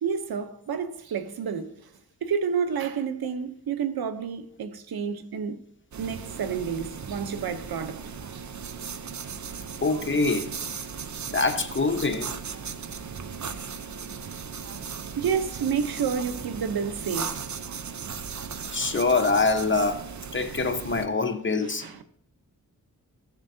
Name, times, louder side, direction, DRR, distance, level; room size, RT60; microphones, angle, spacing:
voice 1, 0.0-1.7 2.2-5.6 6.0-8.0 8.3-8.4 15.2-17.4 21.8-22.0, right 6 dB, 90° right, 0.8 m, -29 dB
sound 1, 5.9-21.1, right 6 dB, 50° right, 0.7 m, -37 dB
voice 2, 9.8-10.5 11.3-12.3 18.7-20.0 20.3-21.9, left 3 dB, 35° left, 1.0 m, -24 dB
15.5 x 7.2 x 2.7 m
cardioid pair, 65°, 36 cm